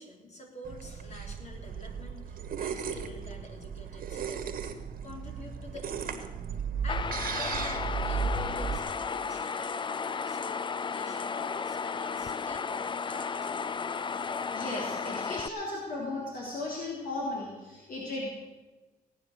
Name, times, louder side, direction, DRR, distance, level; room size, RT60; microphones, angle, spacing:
voice 1, 0.0-6.4 6.8-9.9 10.3-13.9, left 1 dB, 50° left, 2 dB, 3.5 m, -47 dB
sound 1, 0.6-8.8, right 6 dB, 70° right, 1.4 m, -35 dB
sound 2, 6.9-15.5, left 5 dB, 30° left, 0.5 m, -34 dB
voice 2, 14.5-18.3, left 2 dB, 65° left, -4 dB, 3.6 m, -36 dB
17.5 x 9.5 x 6.6 m, 1.2 s
cardioid pair, 90°, 15 cm